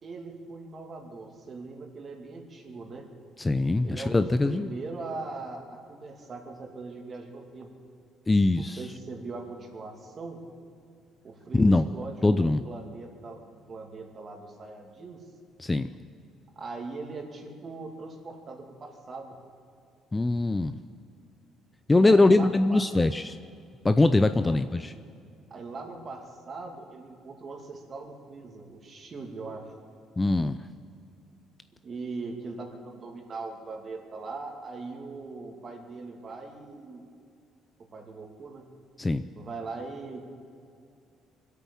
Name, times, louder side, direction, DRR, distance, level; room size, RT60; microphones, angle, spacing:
voice 1, 0.0-3.1 3.8-7.7 8.5-10.4 11.2-13.4 13.7-15.2 16.6-19.3 21.9-22.8 24.2-24.6 25.5-29.7 31.8-37.0 37.9-38.7 39.4-40.2, right 3 dB, 35° right, 2 dB, 2.4 m, -40 dB
voice 2, 3.4-4.7 8.3-8.8 11.5-11.8 12.2-12.6 15.6-15.9 20.1-20.8 21.9-23.4 23.8-24.9 30.2-30.6 39.0-39.2, left 2 dB, 15° left, 11 dB, 0.4 m, -22 dB
23.5 x 8.4 x 7.2 m, 2.4 s
cardioid pair, 125°, 0 cm